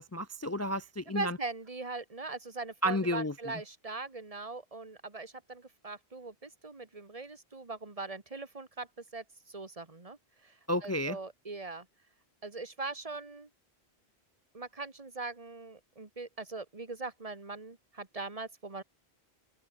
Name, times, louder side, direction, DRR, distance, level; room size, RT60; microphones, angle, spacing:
voice 1, 0.0-1.4 2.8-3.5 10.7-11.2, equal, 25° left, 0.3 m, -32 dB
voice 2, 1.1-11.9 12.4-13.5 14.5-18.8, right 3 dB, 35° right, 1.9 m, -41 dB
open air
omnidirectional pair, 1.1 m